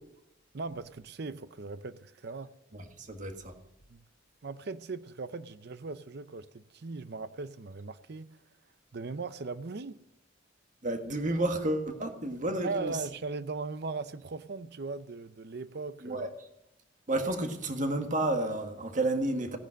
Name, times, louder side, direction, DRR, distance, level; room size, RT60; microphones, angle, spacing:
voice 1, 0.5-2.6 3.9-4.0 4.4-8.3 8.9-10.0 12.6-16.3, right 3 dB, 60° right, 0.6 m, -39 dB
voice 2, 2.7-3.5 10.8-13.0 16.0-16.3 17.1-19.6, right 1 dB, 40° right, 1.7 m, -31 dB
17.0 x 10.5 x 6.3 m
head